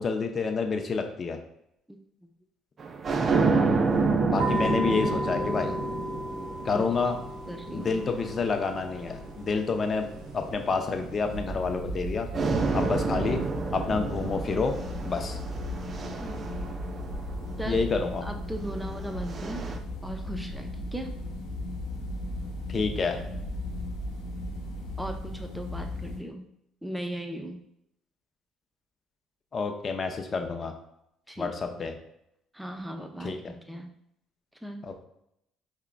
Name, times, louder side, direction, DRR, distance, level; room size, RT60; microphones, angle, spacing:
voice 1, 0.0-1.4 4.3-5.7 6.6-7.2 7.7-10.1 10.3-12.3 12.7-13.4 13.7-15.4 17.6-18.3 22.7-23.2 29.5-30.7 31.4-31.9 33.2-33.4 34.8-35.1, left 4 dB, 40° left, 5 dB, 0.6 m, -28 dB
voice 2, 1.9-2.3 6.7-6.9 7.5-8.0 16.2-16.5 17.6-17.8 18.2-19.6 20.0-21.1 25.0-26.5 26.8-27.6 31.3-31.8 32.5-33.9 34.6-35.1, equal, 5° right, 4 dB, 0.6 m, -38 dB
sound 1, 2.8-9.4 10.1-12.0 12.3-17.7 18.6-19.8, right 4 dB, 40° right, 0.5 m, -30 dB
sound 2, 4.4-11.4, equal, 90° right, 1.2 m, -36 dB
sound 3, 11.3-26.2, left 1 dB, 75° left, 0.9 m, -36 dB
4.7 x 3.4 x 2.2 m, 0.78 s
hypercardioid pair, 55°, 0 cm